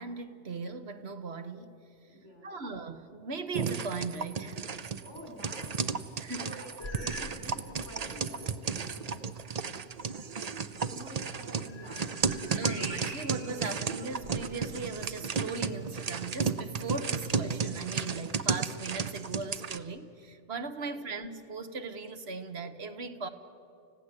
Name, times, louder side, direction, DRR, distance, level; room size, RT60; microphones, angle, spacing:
voice 1, 0.0-1.7 2.4-4.6 6.2-6.6 12.5-23.3, right 4 dB, 65° right, 8 dB, 1.4 m, -38 dB
voice 2, 2.1-2.6 5.0-6.0 6.4-9.3 10.4-12.7 20.9-21.1, equal, 85° left, 2 dB, 5.2 m, -49 dB
sound 1, 3.5-19.8, right 5 dB, 40° right, 0.7 m, -34 dB
sound 2, 6.8-7.4 7.7-8.1 8.7-8.8 11.2-13.6 14.1-15.1, left 1 dB, 45° left, 3.1 m, -45 dB
30.0 x 15.5 x 8.3 m, 2.6 s
omnidirectional pair, 1.2 m